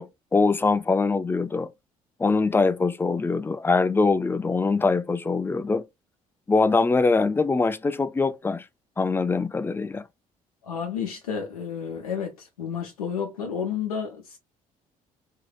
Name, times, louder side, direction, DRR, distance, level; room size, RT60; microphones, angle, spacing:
voice 1, 0.0-1.7 2.2-5.8 6.5-8.7 9.0-10.0, left 4 dB, 10° left, 0.4 m, -23 dB
voice 2, 10.6-14.4, left 7 dB, 75° left, 0.5 m, -31 dB
3.6 x 3.1 x 2.3 m
figure-of-eight pair, 50°, 19 cm